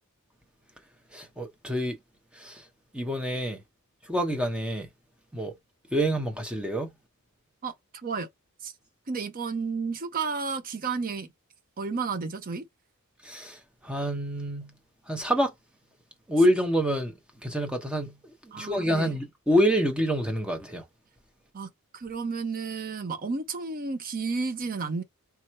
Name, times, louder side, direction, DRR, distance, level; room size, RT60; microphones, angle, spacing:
voice 1, 1.1-2.0 2.3-2.6 2.9-3.6 4.0-4.9 5.3-5.5 5.9-6.9 13.2-14.7 15.1-15.5 16.3-17.1 17.4-18.1 18.4-20.8, equal, 5° right, 0.8 m, -27 dB
voice 2, 7.6-8.3 8.6-8.7 9.1-11.3 11.8-12.7 18.5-19.1 21.5-25.0, right 4 dB, 40° right, 0.6 m, -32 dB
3.4 x 3.0 x 4.4 m
head